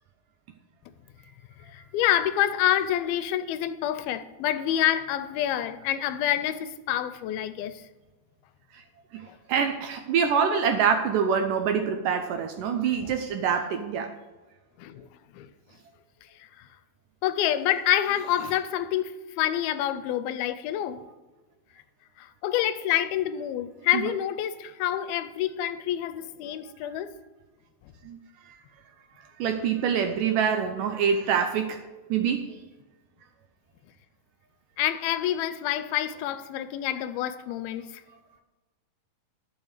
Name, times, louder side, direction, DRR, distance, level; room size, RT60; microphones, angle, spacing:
voice 1, 1.7-7.8 9.3-9.4 13.0-13.1 14.8-15.1 15.3-15.5 16.4-16.7 17.2-21.0 22.2-27.2 34.8-38.0, left 11 dB, 80° left, 2.4 m, -27 dB
voice 2, 9.5-14.1 28.1-28.2 29.4-31.8 32.1-32.5, right 7 dB, 75° right, 2.0 m, -25 dB
11.5 x 6.6 x 6.6 m
omnidirectional pair, 4.4 m